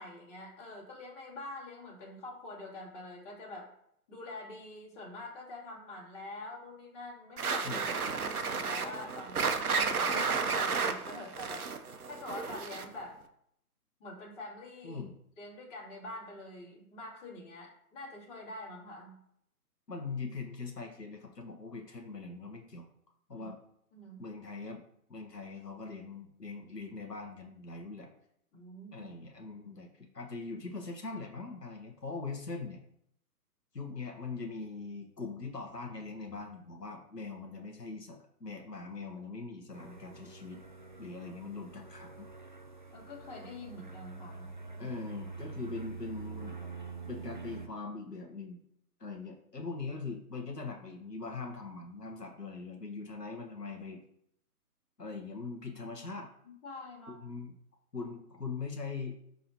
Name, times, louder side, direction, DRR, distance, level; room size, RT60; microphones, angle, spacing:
voice 1, 0.0-3.7 4.1-11.7 12.1-13.2 14.0-15.0 15.4-19.2 23.3-23.5 23.9-24.2 28.5-29.1 42.9-44.5 44.8-45.0 56.4-57.2, left 2 dB, 25° left, -6 dB, 2.9 m, -46 dB
sound 1, 7.4-13.0, right 5 dB, 65° right, 0.9 m, -32 dB
voice 2, 7.6-8.0 14.8-15.2 19.9-22.8 23.3-23.6 24.2-24.8 25.1-28.1 28.9-32.8 33.7-40.6 41.0-42.3 44.8-46.6 47.1-48.6 49.0-54.0 55.0-56.3 57.1-57.6 57.9-59.2, left 4 dB, 90° left, 1 dB, 1.4 m, -41 dB
sound 2, 39.7-47.7, right 4 dB, 35° right, 0.4 m, -46 dB
11.5 x 3.9 x 2.9 m, 0.72 s
figure-of-eight pair, 140°, 47 cm